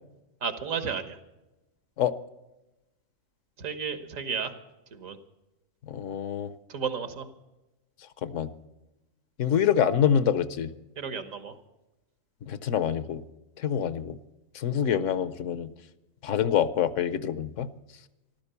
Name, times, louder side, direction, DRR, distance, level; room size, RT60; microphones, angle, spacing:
voice 1, 0.4-1.2 3.6-4.5 5.0-5.2 6.7-7.3 11.0-11.5, right 6 dB, 85° right, 9 dB, 1.8 m, -32 dB
voice 2, 5.9-6.5 8.2-8.5 9.4-10.7 12.4-13.2 13.6-14.2 14.5-15.7 16.2-17.7, left 9 dB, 70° left, 15 dB, 1.1 m, -26 dB
14.5 x 12.5 x 6.9 m, 1.0 s
omnidirectional pair, 1.4 m